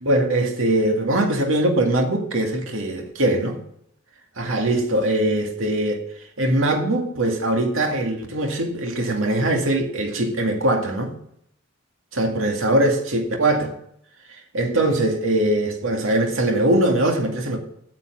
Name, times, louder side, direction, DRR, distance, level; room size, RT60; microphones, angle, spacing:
voice 1, 0.0-3.6 4.4-6.0 6.4-11.2 12.1-13.7 14.5-17.6, right 1 dB, 85° right, 2.1 m, -21 dB
9.6 x 7.1 x 8.4 m
head